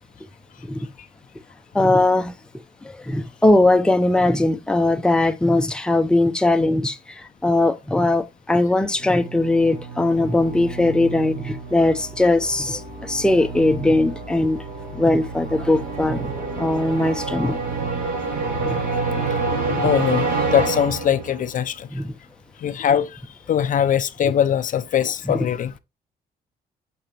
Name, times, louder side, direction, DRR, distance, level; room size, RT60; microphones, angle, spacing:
voice 1, 1.7-2.3 2.8-14.6 14.9-16.3 16.6-17.6 18.6-18.8 19.7-19.9 21.9-22.1 25.3-25.4, left 2 dB, 5° left, 0.6 m, -20 dB
sound 1, 8.9-21.5, right 3 dB, 60° right, 4.4 m, -28 dB
voice 2, 19.2-19.5 19.8-21.9 22.6-23.2 23.5-25.7, left 9 dB, 55° left, 0.5 m, -21 dB
6.6 x 6.0 x 2.9 m
cardioid pair, 85°, 17 cm